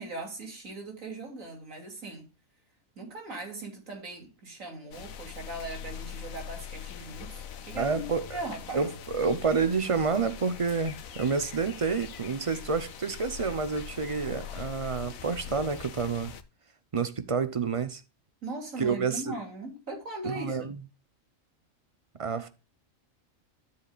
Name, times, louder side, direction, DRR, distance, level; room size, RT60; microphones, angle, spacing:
voice 1, 0.0-2.3 3.0-8.9 18.4-20.8, right 2 dB, 80° right, 3.3 m, -39 dB
sound 1, 4.9-16.4, left 8 dB, 90° left, 1.3 m, -42 dB
voice 2, 7.8-8.4 8.7-16.3 16.9-18.0 18.8-19.3 20.2-20.8 22.2-22.5, right 5 dB, 30° right, 0.7 m, -29 dB
12.5 x 7.3 x 2.4 m
omnidirectional pair, 1.4 m